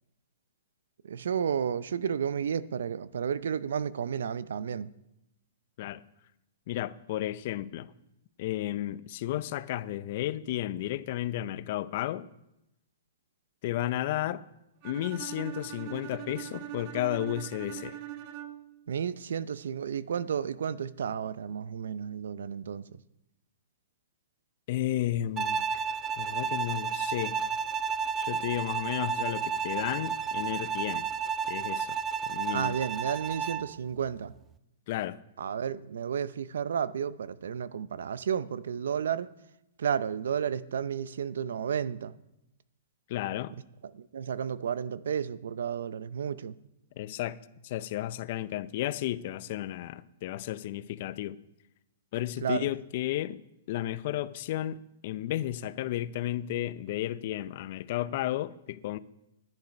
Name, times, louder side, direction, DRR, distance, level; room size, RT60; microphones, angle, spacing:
voice 1, 1.0-4.9 18.9-23.0 32.5-34.3 35.4-39.3 39.8-42.1 43.9-46.6 52.4-52.7, right 7 dB, 80° right, 0.5 m, -32 dB
voice 2, 6.7-7.9 8.4-12.3 13.6-14.4 14.8-18.0 24.7-25.8 26.2-27.4 28.2-31.0 31.5-32.0 32.3-32.8 34.9-35.2 43.1-43.5 47.0-47.4 47.6-51.4 52.1-53.4 53.7-59.0, left 13 dB, 50° left, 0.5 m, -33 dB
Bowed string instrument, 14.8-18.8, right 13 dB, 35° right, 0.8 m, -41 dB
Bowed string instrument 2, 25.4-33.7, right 6 dB, 20° right, 0.3 m, -32 dB
10.5 x 10.5 x 5.3 m
hypercardioid pair, 150°, 0 cm